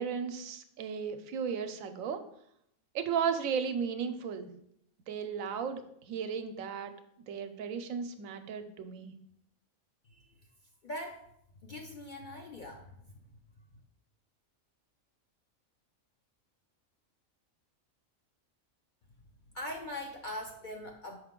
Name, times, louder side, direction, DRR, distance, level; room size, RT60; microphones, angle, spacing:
voice 1, 0.0-2.2 2.9-4.5 5.1-6.9 7.3-9.1, right 6 dB, 80° right, 8 dB, 1.0 m, -35 dB
voice 2, 10.8-11.3 11.6-13.1 19.5-21.2, left 1 dB, 55° left, 2 dB, 0.5 m, -41 dB
5.8 x 4.6 x 3.6 m, 0.73 s
omnidirectional pair, 1.4 m